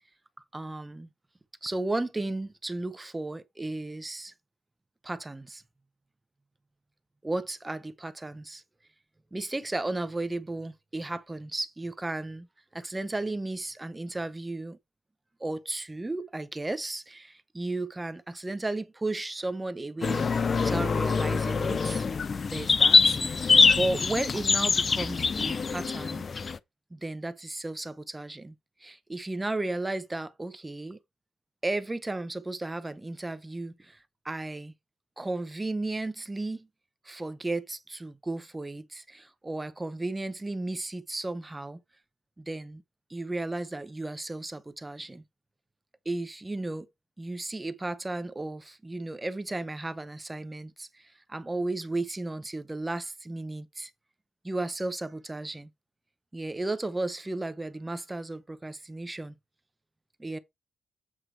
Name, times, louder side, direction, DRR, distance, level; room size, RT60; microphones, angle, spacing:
voice 1, 0.5-1.1 1.6-4.3 5.0-5.6 7.2-8.6 9.3-12.5 12.7-14.8 15.4-20.3 20.6-22.1 22.5-26.3 26.9-28.5 28.8-31.0 31.6-34.7 35.2-36.7 37.0-41.8 42.4-42.8 43.1-45.2 46.1-46.9 47.2-53.9 54.4-55.7 56.3-59.3 60.2-60.4, right 2 dB, 10° right, 0.6 m, -34 dB
sound 1, 20.0-26.6, left 5 dB, 30° left, 0.4 m, -24 dB
8.0 x 4.6 x 4.4 m
wide cardioid pair, 170°, 0 cm